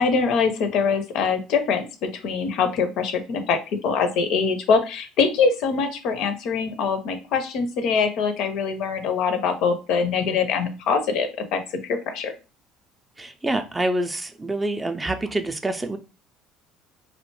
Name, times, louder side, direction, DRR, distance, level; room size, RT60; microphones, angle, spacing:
voice 1, 0.0-11.6 11.9-12.3, left 5 dB, 60° left, 8 dB, 0.4 m, -23 dB
voice 2, 13.2-16.0, right 1 dB, 15° right, 8 dB, 0.4 m, -26 dB
2.5 x 2.1 x 2.9 m, 0.31 s
figure-of-eight pair, 60°, 0 cm